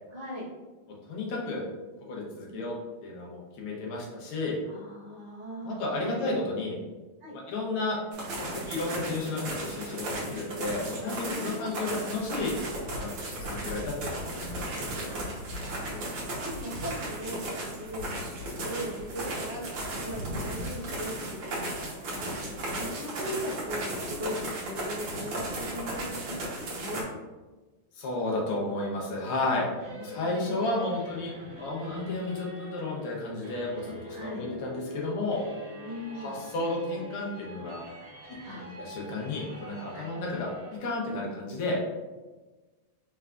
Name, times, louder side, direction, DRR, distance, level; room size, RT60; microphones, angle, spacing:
voice 1, 0.1-0.5 2.4-2.6 4.6-6.2 7.2-7.3 11.3-11.7 15.0-19.6 19.9-27.0 29.9-30.4 34.1-34.4 35.8-36.4 38.4-38.6 39.9-40.1, equal, 35° right, -7 dB, 0.9 m, -40 dB
voice 2, 1.1-1.7 2.1-2.7 3.0-4.6 5.6-6.8 7.3-8.0 8.5-12.6 12.9-14.9 27.9-29.7 30.0-31.3 31.6-35.4 36.1-37.8 38.3-40.5 40.8-41.8, left 2 dB, 80° left, -2 dB, 1.8 m, -32 dB
sound 1, 8.1-27.0, right 1 dB, 80° right, 1.9 m, -35 dB
sound 2, 29.6-40.8, left 1 dB, 55° right, 1.8 m, -44 dB
4.7 x 3.3 x 2.4 m, 1.2 s
omnidirectional pair, 2.3 m